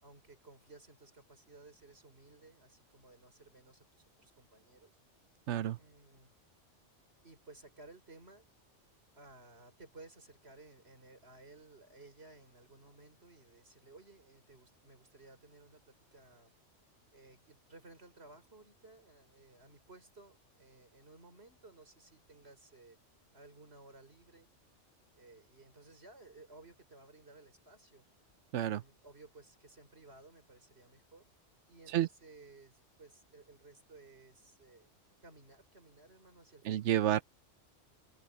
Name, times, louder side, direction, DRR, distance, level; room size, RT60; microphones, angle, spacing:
voice 1, 0.0-3.9 4.2-5.0 5.8-6.4 7.2-8.5 9.2-16.5 17.1-23.0 23.3-24.5 25.1-28.0 28.6-31.3 31.7-34.9 35.2-37.1, right 2 dB, 60° right, 5.4 m, -57 dB
voice 2, 5.5-5.8 28.5-28.8 31.9-32.1 36.7-37.2, right 11 dB, 75° right, 0.9 m, -30 dB
open air
omnidirectional pair, 1.2 m